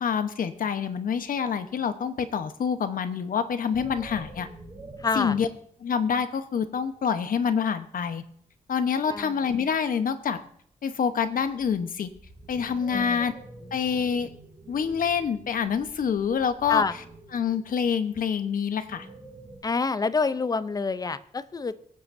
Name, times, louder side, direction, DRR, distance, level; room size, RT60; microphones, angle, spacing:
voice 1, 0.0-4.5 5.1-5.5 5.8-8.2 8.7-10.4 10.8-12.1 12.5-13.3 13.7-14.3 14.7-16.8 17.3-19.1, left 7 dB, 80° left, 10 dB, 0.9 m, -26 dB
sound 1, 3.7-5.7 8.9-9.0 11.0-19.6, right 2 dB, 30° right, 4.6 m, -47 dB
voice 2, 5.0-5.4 9.1-9.4 12.9-13.2 16.7-16.9 19.6-21.8, left 4 dB, 25° left, 14 dB, 0.5 m, -27 dB
24.0 x 8.8 x 2.6 m, 0.65 s
wide cardioid pair, 145°, 14 cm